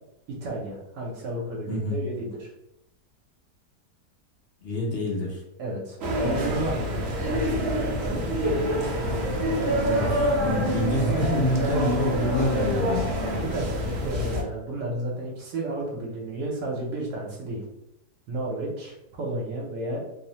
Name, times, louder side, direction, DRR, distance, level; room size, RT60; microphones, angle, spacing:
voice 1, 0.3-2.5 5.6-8.3 11.6-11.9 13.2-17.6 18.3-20.0, right 1 dB, 85° right, -3 dB, 1.2 m, -32 dB
voice 2, 1.7-2.0 4.6-5.4 9.8-13.2, left 1 dB, 55° left, -3 dB, 0.7 m, -27 dB
sound 1, 6.0-14.4, equal, 65° right, 0.8 m, -26 dB
3.0 x 2.0 x 2.7 m, 0.84 s
omnidirectional pair, 1.8 m